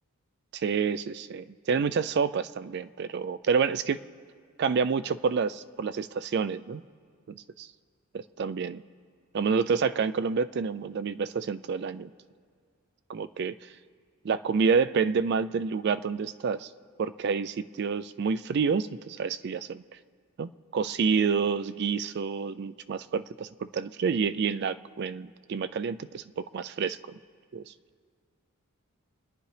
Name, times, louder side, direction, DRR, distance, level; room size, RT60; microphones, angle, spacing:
voice 1, 0.5-4.0 4.6-6.8 7.3-7.7 8.1-8.8 9.3-12.1 13.1-13.5 14.2-16.7 17.0-19.8 20.4-27.2 27.5-27.7, right 5 dB, 50° right, 13 dB, 0.3 m, -28 dB
27.5 x 10.0 x 3.3 m, 2.1 s
head